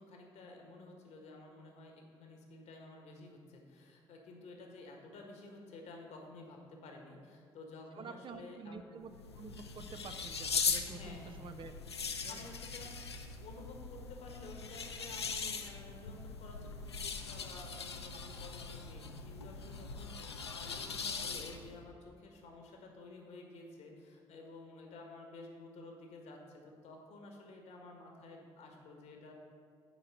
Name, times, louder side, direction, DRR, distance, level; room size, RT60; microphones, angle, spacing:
voice 1, 0.0-8.9 10.9-11.4 12.3-12.9 13.4-29.3, left 2 dB, 55° left, 2 dB, 1.4 m, -52 dB
voice 2, 8.0-11.7 12.2-12.5 18.1-18.2, right 4 dB, 40° right, 8 dB, 0.6 m, -49 dB
sound 1, 9.0-21.8, left 5 dB, 85° left, 0.4 m, -40 dB
8.8 x 4.8 x 6.6 m, 2.2 s
figure-of-eight pair, 45°, 13 cm